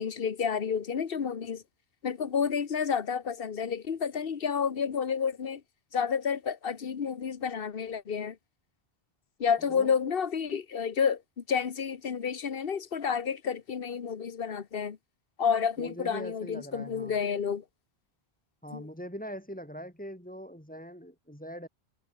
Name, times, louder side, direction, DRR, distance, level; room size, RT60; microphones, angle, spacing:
voice 1, 0.0-1.6 2.0-5.6 5.9-8.4 9.4-15.0 15.4-17.6 18.7-18.8, left 6 dB, 60° left, 1.3 m, -30 dB
voice 2, 15.8-17.2 18.6-21.7, equal, 10° left, 4.5 m, -42 dB
omnidirectional pair, 1.1 m